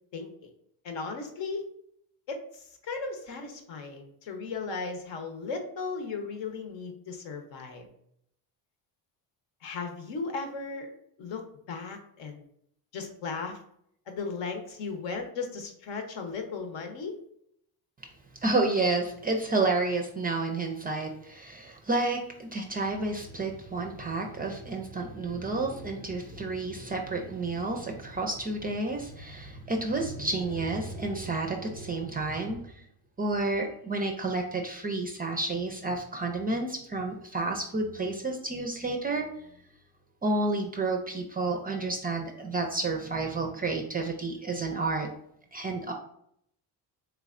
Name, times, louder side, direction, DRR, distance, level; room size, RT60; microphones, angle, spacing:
voice 1, 0.1-0.5 0.8-1.6 2.3-7.9 9.6-10.9 11.2-12.4 12.9-13.6 14.1-17.2, left 4 dB, 65° left, 5 dB, 0.9 m, -36 dB
voice 2, 18.4-32.8 33.2-39.3 40.2-45.1 45.5-45.9, right 2 dB, 20° right, 2 dB, 0.4 m, -30 dB
3.4 x 3.1 x 2.4 m, 0.71 s
supercardioid pair, 90°, 47 cm